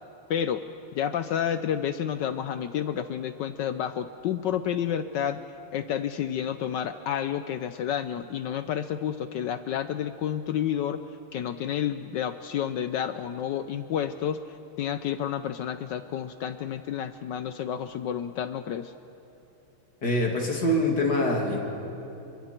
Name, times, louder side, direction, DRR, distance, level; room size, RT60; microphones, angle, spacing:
voice 1, 0.3-0.6 0.9-5.4 5.7-11.0 11.3-18.9, left 9 dB, 75° left, 11 dB, 1.0 m, -30 dB
voice 2, 20.0-21.6, left 1 dB, 50° left, 0 dB, 3.1 m, -24 dB
29.0 x 23.0 x 4.5 m, 2.8 s
omnidirectional pair, 2.4 m